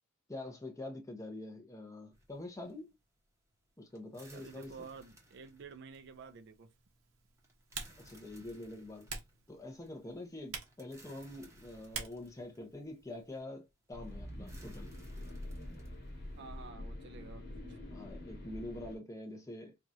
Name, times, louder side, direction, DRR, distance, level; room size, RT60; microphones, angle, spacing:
voice 1, 0.3-2.9 3.8-4.7 8.0-9.1 9.5-14.9 17.9-19.8, left 1 dB, 15° left, 0.8 m, -45 dB
sound 1, 2.1-16.7, right 1 dB, 15° right, 0.9 m, -62 dB
voice 2, 4.3-6.7 16.4-17.8, right 5 dB, 55° right, 0.5 m, -51 dB
Typing, 5.9-13.4, right 5 dB, 90° right, 1.0 m, -49 dB
sound 2, 13.9-19.0, left 1 dB, 50° left, 1.4 m, -46 dB
4.7 x 2.4 x 2.7 m
head